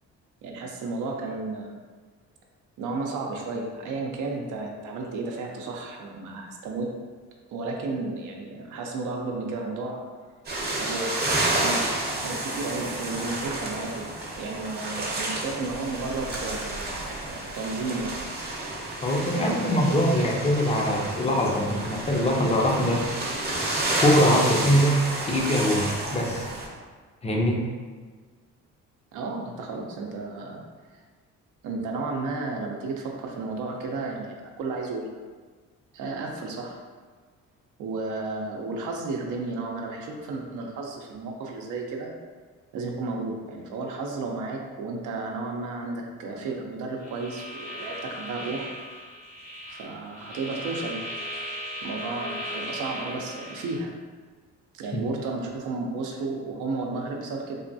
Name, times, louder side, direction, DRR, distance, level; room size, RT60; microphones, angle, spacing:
voice 1, 0.4-1.8 2.8-6.9 7.5-10.0 10.8-14.1 14.4-18.2 19.3-20.0 29.1-30.6 30.9-31.0 31.6-35.1 35.9-36.8 37.8-42.1 42.7-48.7 49.7-51.1 51.8-53.9 54.7-57.6, right 3 dB, 80° right, 0 dB, 0.6 m, -33 dB
sound 1, 10.4-26.7, right 2 dB, 35° right, 0.7 m, -30 dB
voice 2, 19.0-23.0 24.0-26.4 27.2-27.6 54.9-55.0, equal, 20° left, 0 dB, 0.5 m, -23 dB
sound 2, 47.0-53.8, equal, 80° left, 1.1 m, -37 dB
3.4 x 2.2 x 2.6 m, 1.5 s
cardioid pair, 90°, 30 cm